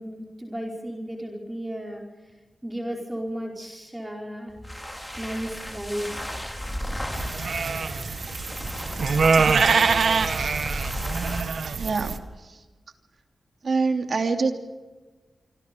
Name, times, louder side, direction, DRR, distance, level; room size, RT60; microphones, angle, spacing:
voice 1, 0.0-2.3 2.6-4.5 5.2-6.2, equal, 15° right, 0 dB, 4.7 m, -34 dB
sound 1, 4.5-11.5, equal, 5° left, 4.0 m, -34 dB
sound 2, 7.1-12.2, right 5 dB, 70° right, 1.7 m, -24 dB
voice 2, 11.7-12.6 13.6-14.5, right 4 dB, 55° right, 5 dB, 3.0 m, -26 dB
26.5 x 26.0 x 5.4 m, 1.3 s
wide cardioid pair, 115°, 0 cm